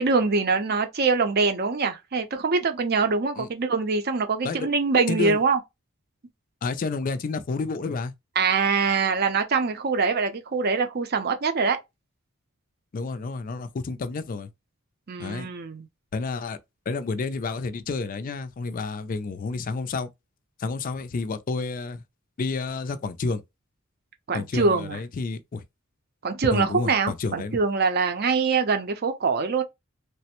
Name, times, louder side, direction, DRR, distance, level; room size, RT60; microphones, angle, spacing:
voice 1, 0.0-5.6 8.4-11.8 15.1-15.8 24.3-25.0 26.2-29.6, right 4 dB, 50° right, 0.6 m, -24 dB
voice 2, 5.1-5.4 6.6-8.1 12.9-14.5 15.2-15.5 16.1-16.6 16.9-20.1 20.6-22.0 22.4-23.4 24.3-25.6 26.5-27.6, left 4 dB, 40° left, 0.4 m, -30 dB
3.2 x 2.1 x 2.8 m
head